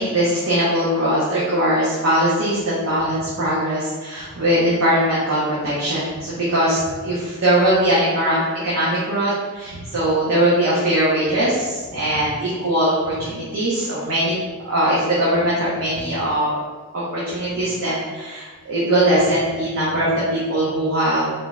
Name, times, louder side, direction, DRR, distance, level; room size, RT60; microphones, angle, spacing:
voice 1, 0.0-14.3 14.6-16.5 17.1-21.3, right 1 dB, 70° right, -9 dB, 0.9 m, -20 dB
3.7 x 2.3 x 4.0 m, 1.3 s
head